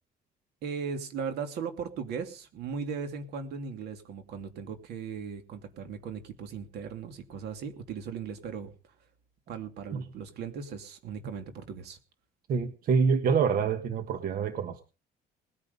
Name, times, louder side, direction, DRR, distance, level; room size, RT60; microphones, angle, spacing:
voice 1, 0.6-8.7 9.5-12.0, right 6 dB, 75° right, 7 dB, 2.8 m, -38 dB
voice 2, 12.5-14.8, right 6 dB, 60° right, 9 dB, 1.4 m, -26 dB
20.0 x 9.9 x 5.4 m, 0.35 s
cardioid pair, 110°, 17 cm